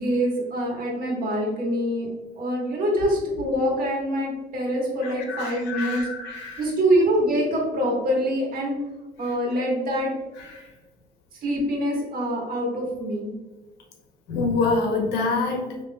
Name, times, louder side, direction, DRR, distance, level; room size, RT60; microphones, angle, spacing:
voice 1, 0.0-2.1 2.3-6.1 6.6-8.8 9.2-10.1 11.4-13.3, equal, 60° right, -1 dB, 1.3 m, -25 dB
voice 2, 5.0-6.7 10.4-10.6 14.3-15.7, left 3 dB, 90° left, 3 dB, 0.8 m, -26 dB
5.2 x 2.8 x 2.2 m, 1.2 s
cardioid pair, 110°, 17 cm